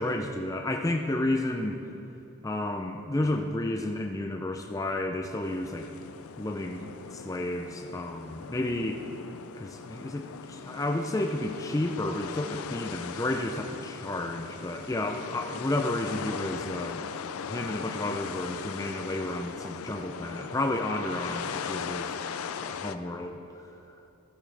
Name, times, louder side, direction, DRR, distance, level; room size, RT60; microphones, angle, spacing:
voice 1, 0.0-1.8 2.4-5.9 6.4-9.0 9.6-17.0 17.5-22.2 22.6-23.4, left 1 dB, 15° left, 3 dB, 0.4 m, -31 dB
sound 1, 5.4-23.0, left 7 dB, 75° left, 0.4 m, -39 dB
14.5 x 11.0 x 3.4 m, 2.9 s
head